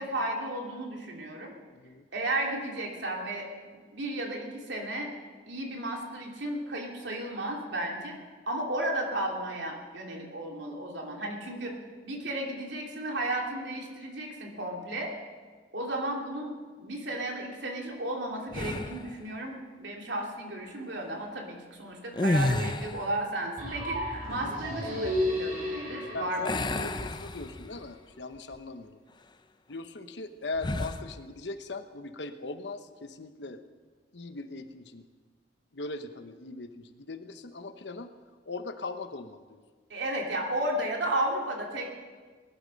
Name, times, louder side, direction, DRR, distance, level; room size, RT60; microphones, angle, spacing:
voice 1, 0.0-1.5 2.1-3.5 3.9-5.1 5.5-8.2 8.5-11.7 12.0-15.1 15.7-16.5 16.8-26.9 39.9-41.9, right 1 dB, 85° right, 0 dB, 2.8 m, -34 dB
voice 2, 1.7-2.0 26.1-29.0 29.7-33.6 34.1-35.1 35.7-38.1 38.4-39.6, left 3 dB, 75° left, 8 dB, 1.0 m, -40 dB
sound 1, 18.5-19.2 22.1-23.2 26.4-27.9 28.4-28.6 30.6-31.1, left 2 dB, 25° left, 0.6 m, -30 dB
sound 2, 23.6-27.5, left 1 dB, 55° right, 5.0 m, -33 dB
20.5 x 11.5 x 5.3 m, 1.5 s
head